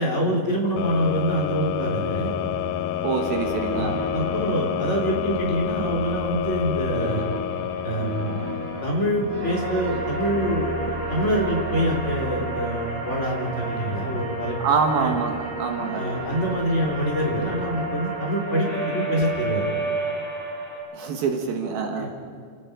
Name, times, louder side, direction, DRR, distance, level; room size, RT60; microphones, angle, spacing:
voice 1, 0.0-2.3 3.7-7.3 7.8-8.5 8.8-14.6 14.9-15.2 15.9-19.7 22.0-22.1, equal, 15° left, -1 dB, 3.7 m, -25 dB
sound 1, 0.8-9.7, left 13 dB, 80° left, 2.2 m, -29 dB
sound 2, 1.7-18.3, right 1 dB, 90° right, 4.4 m, -36 dB
voice 2, 3.0-4.0 14.6-16.0 20.9-22.1, right 5 dB, 70° right, 4 dB, 3.4 m, -25 dB
sound 3, 9.4-20.8, right 2 dB, 20° right, 7.9 m, -31 dB
28.5 x 18.0 x 5.2 m, 2.2 s
omnidirectional pair, 4.6 m